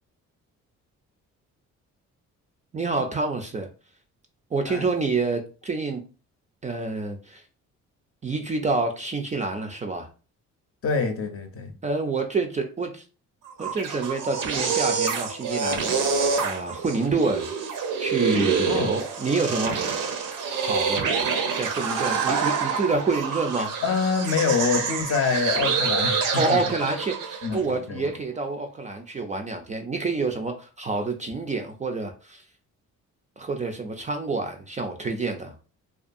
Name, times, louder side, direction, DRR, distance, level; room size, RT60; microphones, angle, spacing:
voice 1, 2.7-3.7 4.5-6.0 6.6-7.4 8.2-10.1 11.8-13.0 13.6-17.5 18.0-19.8 20.6-21.1 21.6-23.7 26.4-32.4 33.4-35.5, right 3 dB, 25° right, 0.3 m, -28 dB
voice 2, 10.8-11.7 18.7-18.9 23.8-26.6 27.4-28.0, left 5 dB, 45° left, 0.6 m, -26 dB
sound 1, 13.5-27.6, right 5 dB, 75° right, 0.6 m, -27 dB
2.5 x 2.3 x 2.5 m
cardioid pair, 80°, 32 cm